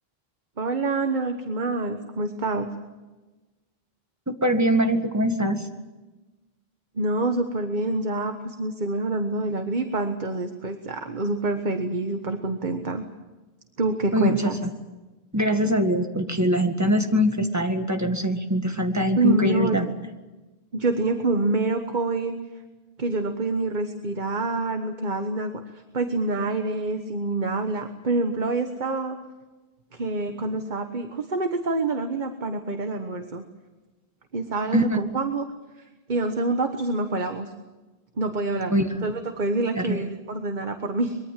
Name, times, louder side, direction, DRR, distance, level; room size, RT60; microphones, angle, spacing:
voice 1, 0.6-2.7 6.9-13.0 13.8-14.6 19.1-19.8 20.7-22.4 23.0-25.5 25.9-29.2 29.9-33.4 34.3-35.5 36.1-37.5 38.2-38.7 39.0-41.2, right 2 dB, 50° right, 6 dB, 1.5 m, -26 dB
voice 2, 4.3-5.7 14.1-14.7 15.3-19.9 34.7-34.8 38.7-39.1 39.8-40.0, equal, 15° right, 5 dB, 1.8 m, -23 dB
24.0 x 22.5 x 7.6 m, 1.2 s
omnidirectional pair, 1.0 m